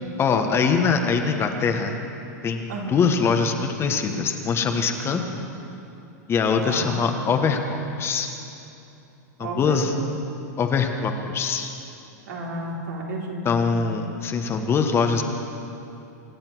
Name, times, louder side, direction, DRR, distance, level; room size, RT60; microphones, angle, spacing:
voice 1, 0.2-2.0 2.4-5.2 6.3-8.3 9.4-9.9 10.6-11.7 13.4-15.2, left 5 dB, 25° left, 5 dB, 1.4 m, -23 dB
voice 2, 2.7-3.0 5.1-5.2 6.7-7.1 9.4-9.8 12.3-13.8, right 2 dB, 80° right, -2 dB, 3.6 m, -32 dB
25.5 x 8.8 x 6.3 m, 2.8 s
hypercardioid pair, 115°, 10 cm